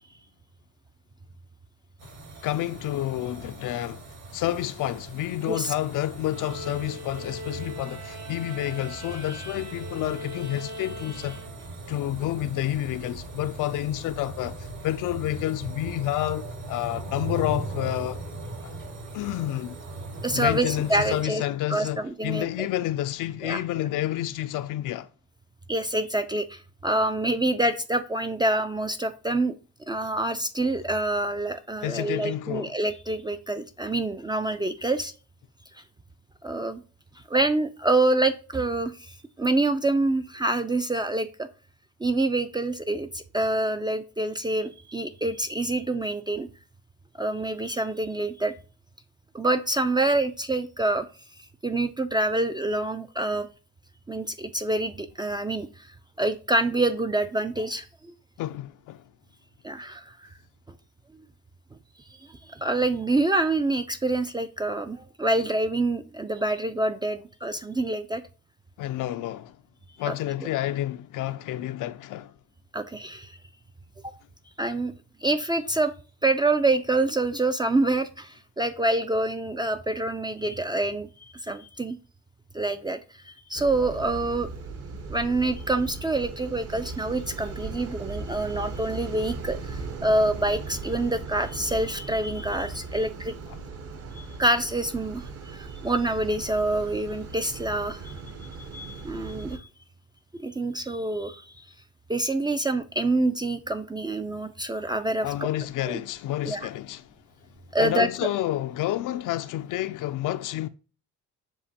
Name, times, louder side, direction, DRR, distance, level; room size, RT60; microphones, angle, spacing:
sound 1, 2.0-21.2, right 2 dB, 60° right, 1.8 m, -39 dB
voice 1, 2.4-4.1 4.3-11.4 11.9-18.2 18.6-18.8 19.1-19.8 20.3-25.1 31.8-32.7 58.4-59.0 68.8-69.6 70.0-72.3 105.2-107.1 107.8-110.7, left 13 dB, 55° left, 0.4 m, -29 dB
sound 2, 6.3-12.0, right 1 dB, 80° right, 1.6 m, -41 dB
voice 2, 20.2-21.4 21.7-22.5 23.4-23.6 25.7-29.5 29.9-35.1 36.4-36.8 37.3-41.5 42.0-46.5 47.2-48.5 49.3-51.1 51.6-53.5 54.1-55.9 56.2-58.1 59.6-60.3 62.2-68.2 70.1-70.2 72.7-73.4 74.0-74.1 74.6-74.9 75.2-75.9 76.2-82.0 82.5-83.0 83.2-84.5 85.1-93.3 94.1-98.2 98.6-99.7 100.4-101.6 102.1-105.5 105.9-106.0 106.4-106.7 107.7-108.1, right 2 dB, 10° right, 0.3 m, -26 dB
sound 3, 83.5-99.6, right 4 dB, 40° right, 0.8 m, -38 dB
7.1 x 2.5 x 2.8 m
supercardioid pair, 70°, 38 cm